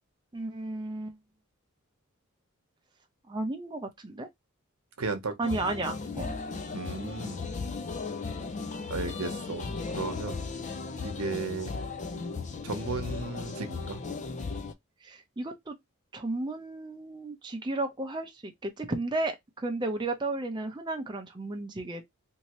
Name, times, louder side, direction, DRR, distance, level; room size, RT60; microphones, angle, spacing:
voice 1, 0.3-1.1 3.3-4.3 5.4-6.4 15.0-15.8 16.1-22.0, right 2 dB, 20° right, 0.5 m, -33 dB
voice 2, 5.0-5.4 6.7-7.5 8.9-10.4 11.0-11.7 12.6-14.0, right 3 dB, 85° right, 0.9 m, -35 dB
sound 1, 5.4-14.7, left 4 dB, 35° left, 0.4 m, -36 dB
2.7 x 2.7 x 3.0 m
head